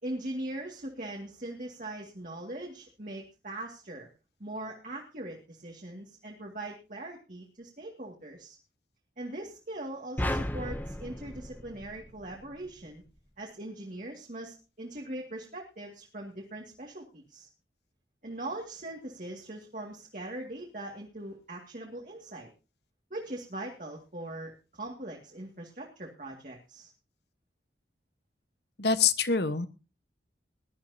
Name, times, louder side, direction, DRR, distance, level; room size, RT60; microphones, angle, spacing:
voice 1, 0.0-4.1 4.4-8.6 9.2-13.0 13.4-17.5 18.2-22.5 23.1-26.9, right 1 dB, 45° right, 0 dB, 2.1 m, -41 dB
sound 1, 10.2-12.6, left 1 dB, 10° left, 0.8 m, -34 dB
voice 2, 28.8-29.7, left 5 dB, 65° left, 12 dB, 1.2 m, -25 dB
20.5 x 12.0 x 2.8 m, 0.31 s
head